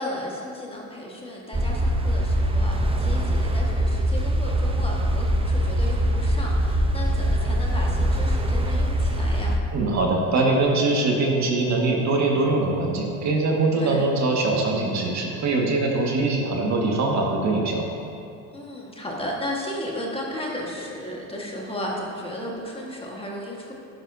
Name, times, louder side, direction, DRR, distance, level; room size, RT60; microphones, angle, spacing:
voice 1, 0.0-9.5 13.7-14.1 18.5-23.7, left 1 dB, 15° left, -2 dB, 1.6 m, -34 dB
sound 1, 1.5-9.6, equal, 15° right, 0.7 m, -23 dB
voice 2, 9.7-17.8, right 2 dB, 40° right, -1 dB, 1.8 m, -22 dB
11.0 x 11.0 x 2.8 m, 2.6 s
supercardioid pair, 105°, 41 cm